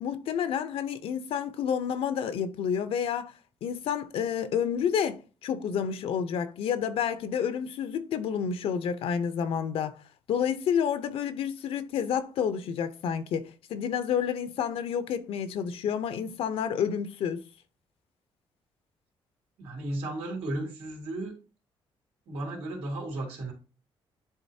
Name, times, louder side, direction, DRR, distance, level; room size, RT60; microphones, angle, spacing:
voice 1, 0.0-3.3 3.6-10.0 10.3-17.4, left 8 dB, 80° left, 0.7 m, -29 dB
voice 2, 19.6-21.4 22.3-23.5, right 1 dB, 90° right, 2.8 m, -34 dB
10.5 x 3.9 x 2.7 m
cardioid pair, 120°, 10 cm